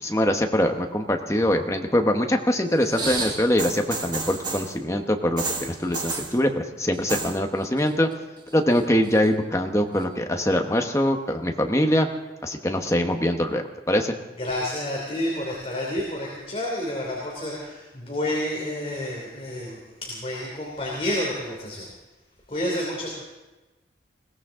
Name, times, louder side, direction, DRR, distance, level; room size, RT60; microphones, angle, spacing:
voice 1, 0.0-8.1 8.5-12.1 12.4-14.1, left 1 dB, 15° left, 4 dB, 1.1 m, -23 dB
sound 1, 2.8-4.7 5.4-6.3 6.9-7.4 7.6-8.1 8.5-9.3 10.0-10.1, right 3 dB, 25° right, 1.6 m, -31 dB
voice 2, 14.4-21.9 22.5-23.1, left 1 dB, 30° left, -3 dB, 3.0 m, -29 dB
21.5 x 17.0 x 3.8 m, 1.1 s
head